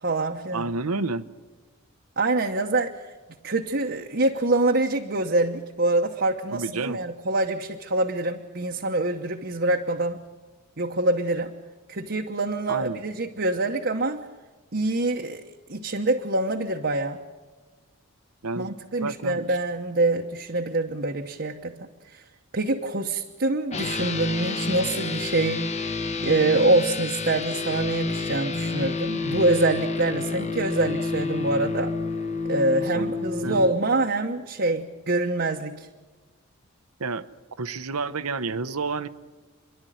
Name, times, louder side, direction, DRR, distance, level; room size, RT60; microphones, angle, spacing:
voice 1, 0.0-0.7 2.2-3.1 3.4-10.2 10.8-11.6 11.9-14.2 14.7-15.4 15.7-17.2 18.6-22.2 22.5-25.8 26.2-31.9 32.4-35.9, right 2 dB, 50° right, 2 dB, 1.0 m, -25 dB
voice 2, 0.5-1.2 6.5-7.0 12.7-13.0 18.4-19.6 32.8-33.1 33.4-33.7 37.0-37.3 37.6-39.1, right 3 dB, 85° right, 13 dB, 0.9 m, -30 dB
sound 1, 23.7-33.7, left 3 dB, 30° left, 1.0 m, -29 dB
28.5 x 11.5 x 9.3 m, 1.3 s
head